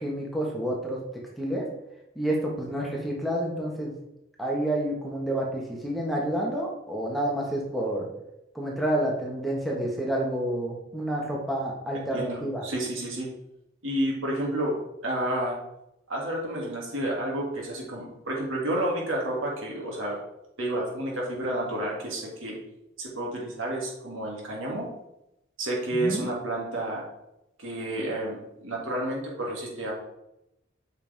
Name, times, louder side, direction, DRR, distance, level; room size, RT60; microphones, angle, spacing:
voice 1, 0.0-1.0 1.4-1.6 2.1-3.9 4.4-8.0 8.5-12.6 25.9-26.2, right 1 dB, ahead, -3 dB, 1.4 m, -29 dB
voice 2, 12.1-13.3 13.8-14.8 15.0-15.6 16.1-20.1 20.6-22.6 23.0-24.9 25.6-27.0 27.6-29.9, right 1 dB, 85° right, -3 dB, 2.5 m, -30 dB
8.1 x 5.6 x 3.5 m, 0.85 s
head